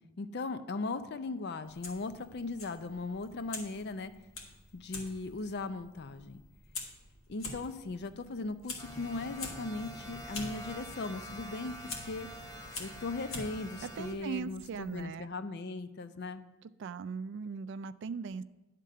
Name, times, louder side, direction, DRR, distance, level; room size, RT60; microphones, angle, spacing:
voice 1, 0.2-4.1 4.7-6.4 7.3-12.3 12.8-16.4, left 3 dB, 50° left, 11 dB, 0.5 m, -38 dB
Fire, 1.6-15.0, left 3 dB, 75° left, 1.5 m, -47 dB
sound 1, 8.8-14.1, equal, 15° left, 0.9 m, -46 dB
voice 2, 13.8-15.3 16.8-18.4, right 5 dB, 60° right, 15 dB, 0.3 m, -39 dB
10.5 x 3.7 x 6.6 m, 1.1 s
head